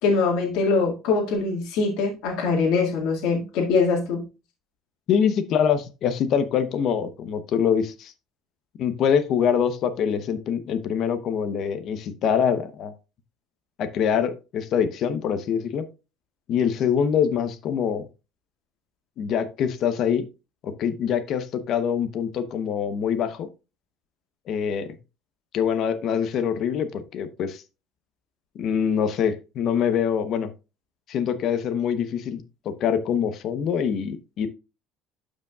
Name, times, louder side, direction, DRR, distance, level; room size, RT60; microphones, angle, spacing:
voice 1, 0.0-4.2, left 4 dB, 75° left, -1 dB, 2.0 m, -23 dB
voice 2, 5.1-8.1 8.8-12.9 13.8-15.9 16.5-18.1 19.2-20.3 20.6-23.5 24.5-24.9 25.5-27.6 28.5-30.5 31.1-34.5, left 7 dB, 50° left, 11 dB, 0.9 m, -24 dB
12.0 x 5.1 x 2.4 m, 0.29 s
cardioid pair, 155°, 0 cm